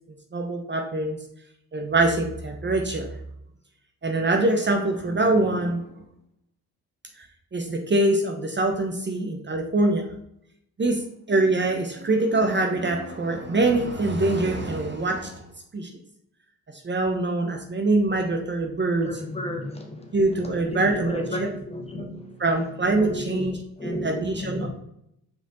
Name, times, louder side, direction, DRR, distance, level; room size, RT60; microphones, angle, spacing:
voice 1, 0.3-1.2 1.7-3.1 4.0-5.8 7.2-7.3 7.5-10.0 10.8-15.4 15.7-15.9 16.8-19.2 20.1-21.5 22.4-24.7, right 2 dB, 30° right, 3 dB, 1.1 m, -24 dB
voice 2, 19.0-20.2 20.7-22.4 23.0-23.5 23.8-24.7, left 1 dB, 15° left, 1 dB, 1.8 m, -33 dB
5.7 x 4.7 x 3.9 m, 0.76 s
cardioid pair, 85°, 35 cm